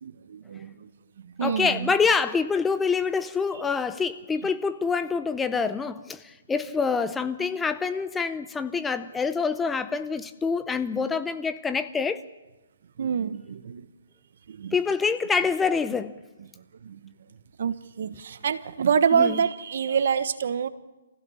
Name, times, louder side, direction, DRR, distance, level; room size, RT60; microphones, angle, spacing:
voice 1, 0.0-0.9 1.4-1.9 13.0-13.9 14.5-14.7 16.8-17.1 17.6-20.7, right 7 dB, 60° right, 1.2 m, -26 dB
voice 2, 1.4-12.2 14.7-16.2 19.1-19.5, left 5 dB, 10° left, 0.6 m, -26 dB
26.5 x 16.0 x 7.1 m
hypercardioid pair, 150°, 0 cm